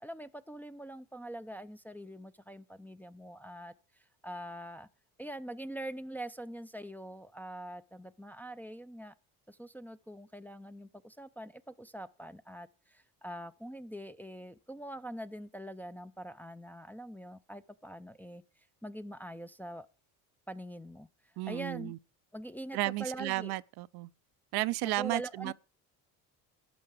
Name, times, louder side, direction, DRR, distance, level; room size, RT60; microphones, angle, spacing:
voice 1, 0.0-3.7 4.2-4.9 5.2-9.1 9.5-18.4 18.8-19.9 20.5-21.9 22.3-23.5 24.8-25.5, right 1 dB, 5° left, 0.5 m, -43 dB
voice 2, 21.4-22.0 22.7-24.1 24.5-25.5, right 19 dB, 65° right, 0.6 m, -33 dB
12.0 x 7.7 x 4.9 m
supercardioid pair, 90°, 42 cm